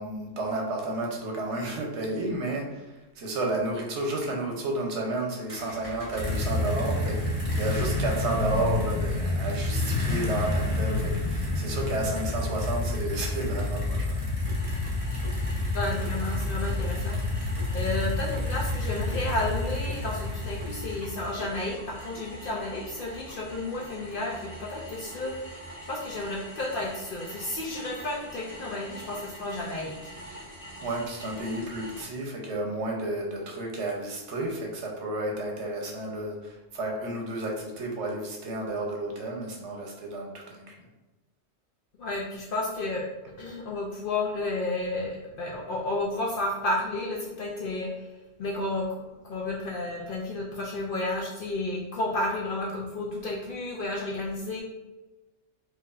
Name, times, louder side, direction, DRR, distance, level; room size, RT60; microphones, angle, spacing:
voice 1, 0.0-14.2 30.8-40.7, right 2 dB, 85° right, 0 dB, 1.1 m, -32 dB
sound 1, 5.5-21.5, left 2 dB, 30° right, 0.9 m, -29 dB
sound 2, 14.4-32.0, right 1 dB, 30° left, 1.2 m, -44 dB
voice 2, 15.7-17.2 17.7-25.3 25.8-29.9 42.0-43.0 43.4-48.1 48.4-54.6, left 2 dB, 60° left, -2 dB, 0.7 m, -32 dB
4.5 x 2.6 x 2.4 m, 1.1 s
omnidirectional pair, 1.1 m